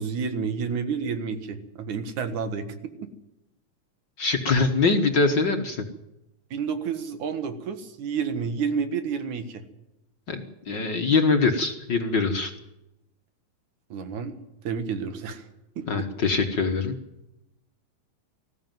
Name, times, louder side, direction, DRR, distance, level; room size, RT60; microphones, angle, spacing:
voice 1, 0.0-3.1 6.5-9.6 13.9-14.4 14.6-15.4 15.8-16.1, right 6 dB, 80° right, 9 dB, 3.1 m, -30 dB
voice 2, 4.2-5.8 10.3-12.5 15.9-16.9, left 4 dB, 45° left, 5 dB, 1.7 m, -23 dB
20.5 x 15.0 x 9.2 m, 0.92 s
omnidirectional pair, 3.3 m